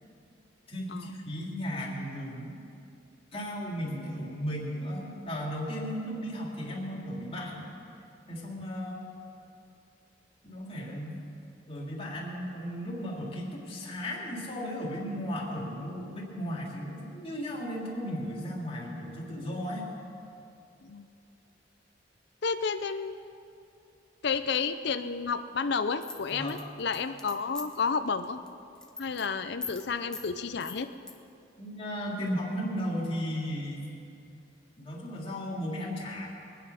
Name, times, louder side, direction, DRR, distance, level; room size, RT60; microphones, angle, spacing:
voice 1, 0.7-2.6 3.3-7.7 8.3-9.0 10.4-11.2 11.7-19.9 26.3-26.6 31.6-33.9 34.8-36.3, equal, 30° left, -4 dB, 3.3 m, -35 dB
voice 2, 22.4-23.1 24.2-28.4 29.0-30.9, left 5 dB, 65° left, 9 dB, 0.6 m, -31 dB
sound 1, 26.0-27.9 28.2-28.5 28.7-29.2 29.6-29.8 30.1-30.3 30.6-31.1, left 4 dB, 5° left, 1.0 m, -41 dB
23.5 x 9.7 x 5.7 m, 2.6 s
head